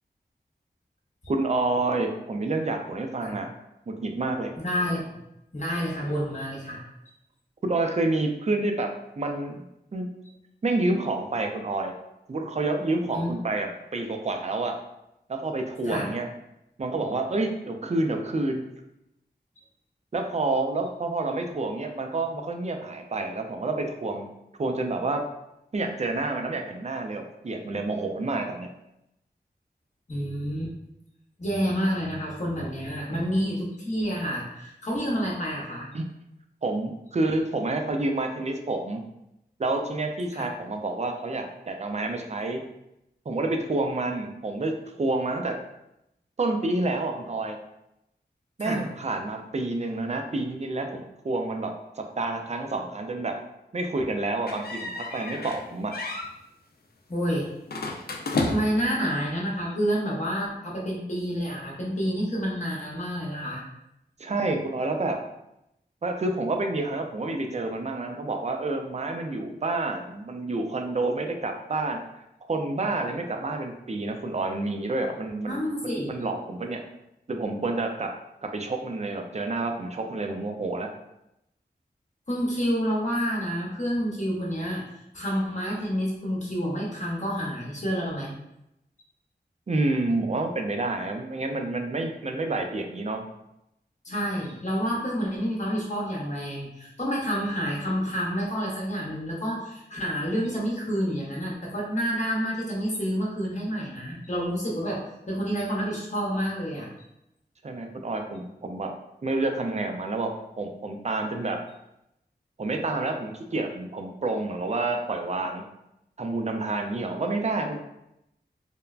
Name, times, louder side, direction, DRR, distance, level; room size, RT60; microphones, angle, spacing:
voice 1, 1.3-3.5 3.9-4.5 7.6-8.9 9.2-9.6 9.9-10.1 10.6-11.9 12.3-14.8 15.3-16.3 16.8-18.7 20.1-24.3 24.6-25.3 25.7-28.7 33.1-33.2 35.9-36.1 36.6-39.0 39.6-42.6 43.3-45.6 46.4-47.6 48.6-53.4 53.7-55.9 64.2-65.2 66.0-72.0 72.5-75.6 76.1-76.8 77.3-78.1 78.5-80.9 89.7-93.3 107.6-108.9 109.2-110.3 110.6-111.6 112.6-115.6 116.2-117.8, right 2 dB, 40° right, 3 dB, 0.4 m, -28 dB
voice 2, 4.6-5.0 5.5-6.8 13.1-13.3 15.8-16.1 30.1-30.7 31.4-35.9 40.3-40.5 48.6-48.8 57.1-57.5 58.5-63.6 75.5-76.1 82.3-88.3 94.0-106.9, equal, 40° left, -4 dB, 0.8 m, -29 dB
sound 1, 54.5-55.6 55.9-56.3 57.7-58.9, left 2 dB, 60° left, 0.4 m, -31 dB
3.2 x 2.1 x 2.4 m, 0.85 s
wide cardioid pair, 65°, 18 cm